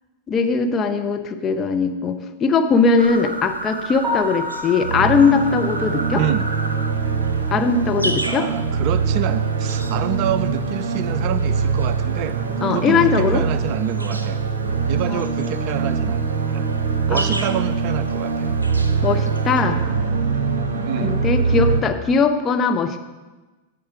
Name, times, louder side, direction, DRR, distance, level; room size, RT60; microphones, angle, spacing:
voice 1, 0.3-6.2 7.5-8.5 12.6-13.4 15.1-15.2 17.1-17.6 19.0-19.8 20.7-23.0, left 5 dB, 25° left, 5 dB, 0.9 m, -20 dB
sound 1, 3.0-19.6, right 1 dB, 80° right, 0.7 m, -34 dB
Piano, 4.0-8.0 8.4-8.5 9.0-9.1 9.4-9.5 12.6-12.7 21.2-21.4, left 3 dB, 10° right, 3.7 m, -33 dB
sound 2, 4.8-21.8, right 5 dB, 65° right, 1.0 m, -23 dB
voice 2, 6.1-6.5 8.2-14.4 14.9-16.2 16.5-16.7 17.1-18.5 19.1-19.3 20.8-21.2, right 11 dB, 45° right, 13 dB, 0.4 m, -27 dB
11.5 x 7.2 x 5.0 m, 1.2 s
figure-of-eight pair, 90°, 0 cm